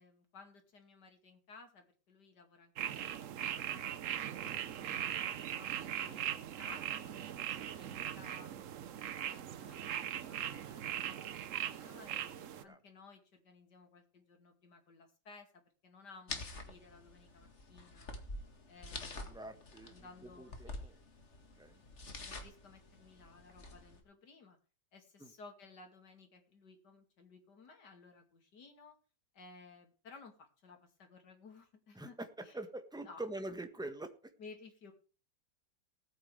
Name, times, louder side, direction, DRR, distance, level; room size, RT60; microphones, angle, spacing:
voice 1, 0.0-3.2 3.5-4.2 4.8-8.6 9.0-9.8 10.3-18.1 18.7-19.6 19.8-20.9 22.2-24.6 24.9-28.9 29.3-32.2 32.4-32.6 33.0-33.2 34.4-34.9, left 4 dB, 65° left, 4 dB, 3.0 m, -57 dB
sound 1, 2.8-12.6, right 10 dB, 60° right, 0.8 m, -40 dB
sound 2, 16.3-24.0, left 2 dB, 40° left, 2.0 m, -48 dB
voice 2, 19.3-20.9 21.6-21.8 25.2-25.3 31.9-34.3, right 2 dB, 5° right, 8 dB, 1.2 m, -45 dB
19.0 x 8.7 x 3.4 m, 0.36 s
omnidirectional pair, 2.0 m